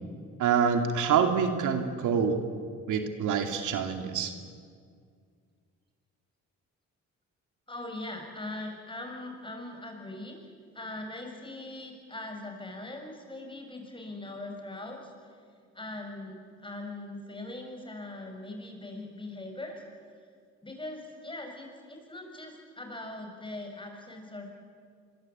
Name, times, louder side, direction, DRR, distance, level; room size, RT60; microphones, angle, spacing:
voice 1, 0.4-2.4 2.9-4.3, right 6 dB, 80° right, 6 dB, 2.6 m, -26 dB
voice 2, 7.7-15.1 15.7-19.8 20.6-24.5, left 2 dB, 15° left, 3 dB, 7.0 m, -41 dB
25.5 x 23.0 x 8.8 m, 2.1 s
cardioid pair, 90°, 30 cm